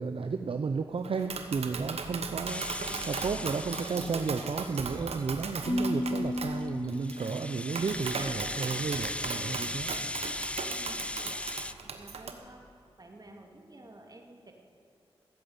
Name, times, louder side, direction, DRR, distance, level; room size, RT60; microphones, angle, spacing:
voice 1, 0.0-9.9, right 4 dB, 60° right, 7 dB, 0.7 m, -33 dB
Tap, 1.0-12.3, right 5 dB, 85° right, 1.1 m, -38 dB
Rattle (instrument), 2.5-5.5 6.0-11.7, left 1 dB, 10° left, 0.5 m, -38 dB
Marimba xylophone / Wood, 5.6-7.8, left 1 dB, 35° left, 1.9 m, -33 dB
voice 2, 10.7-11.5 11.8-12.7 13.0-14.5, right 2 dB, 40° right, 2 dB, 2.7 m, -51 dB
15.5 x 7.9 x 8.8 m, 2.5 s
cardioid pair, 40°, 10 cm